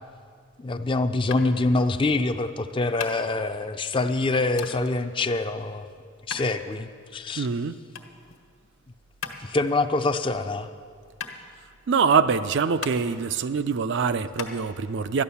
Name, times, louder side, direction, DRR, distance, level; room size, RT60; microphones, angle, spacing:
voice 1, 0.6-5.9 6.3-7.5 9.4-10.7, left 2 dB, 25° left, 0.4 m, -25 dB
sound 1, 1.3-14.5, left 6 dB, 70° left, 1.2 m, -41 dB
voice 2, 7.4-7.8 11.9-15.2, right 5 dB, 55° right, 0.4 m, -24 dB
13.0 x 10.0 x 7.0 m
head